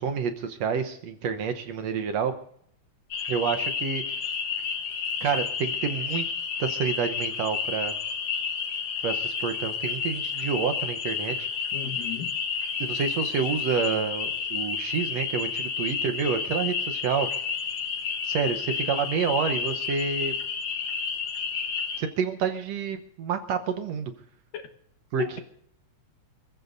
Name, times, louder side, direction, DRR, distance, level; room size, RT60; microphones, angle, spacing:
voice 1, 0.0-2.4 3.3-4.0 5.2-6.3 6.6-7.9 9.0-11.5 12.8-17.3 18.2-20.3 22.0-24.1 25.1-25.4, right 6 dB, 65° right, 8 dB, 1.8 m, -28 dB
sound 1, 3.1-22.0, left 6 dB, 60° left, 2.4 m, -31 dB
voice 2, 11.7-12.4 24.5-24.7 25.2-25.4, left 9 dB, 85° left, 4 dB, 3.0 m, -34 dB
28.0 x 15.0 x 2.6 m, 0.67 s
omnidirectional pair, 3.7 m